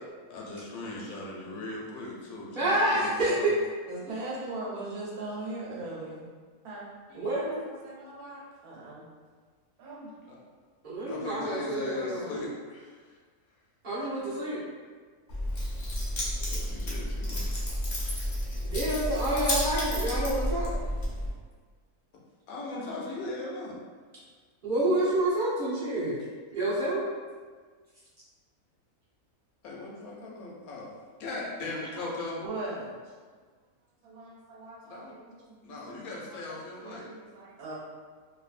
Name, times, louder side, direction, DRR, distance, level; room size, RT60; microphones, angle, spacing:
voice 1, 0.3-3.6 10.3-10.4 11.1-13.1 16.5-17.5 22.5-23.8 29.6-32.4 34.8-35.2 35.6-37.1, left 2 dB, 75° left, -3 dB, 1.0 m, -38 dB
voice 2, 2.5-3.5 7.1-7.6 10.8-12.3 13.8-14.6 18.6-20.7 24.6-26.1 26.5-27.0, right 1 dB, 45° right, -10 dB, 0.7 m, -28 dB
voice 3, 3.9-6.3 6.6-9.1 9.8-10.1 11.4-12.5 31.9-33.1 34.0-37.8, right 2 dB, 80° right, -5 dB, 1.2 m, -41 dB
Keys jangling, 15.3-21.3, equal, 50° left, 0.5 m, -31 dB
2.6 x 2.4 x 2.4 m, 1.5 s
omnidirectional pair, 1.6 m